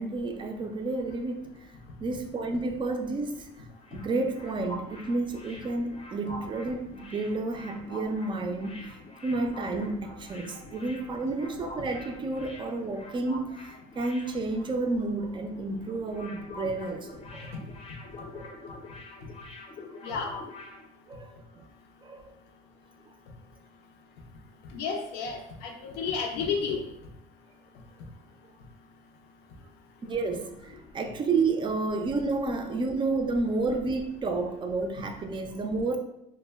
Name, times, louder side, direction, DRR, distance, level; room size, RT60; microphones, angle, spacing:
voice 1, 0.0-1.5 2.0-3.5 3.9-8.9 9.2-17.5 18.3-18.6 20.1-20.2 21.1-21.6 22.0-22.2 30.0-36.0, right 3 dB, 30° right, 5 dB, 0.3 m, -31 dB
sound 1, 3.6-15.1 15.4-15.6 15.9-20.8, left 2 dB, 35° left, 0.5 m, -46 dB
voice 2, 24.7-26.8, left 5 dB, 90° left, 3 dB, 0.5 m, -31 dB
2.2 x 2.1 x 3.3 m, 0.81 s
cardioid pair, 110°, 17 cm